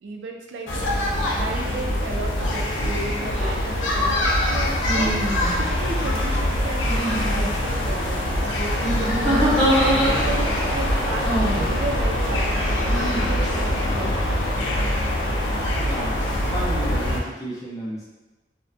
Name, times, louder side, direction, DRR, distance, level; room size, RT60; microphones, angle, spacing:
voice 1, 0.0-9.5 9.8-14.1, right 3 dB, 75° right, 1 dB, 0.3 m, -34 dB
sound 1, 0.7-17.2, left 1 dB, 85° left, 0.4 m, -23 dB
sound 2, 3.3-3.5 4.8-5.7 6.8-7.4 8.8-10.5 11.2-11.7 12.9-13.3, right 1 dB, ahead, 0.8 m, -24 dB
voice 2, 15.8-18.0, right 1 dB, 20° left, -5 dB, 0.4 m, -32 dB
2.3 x 2.1 x 2.5 m, 1.1 s
head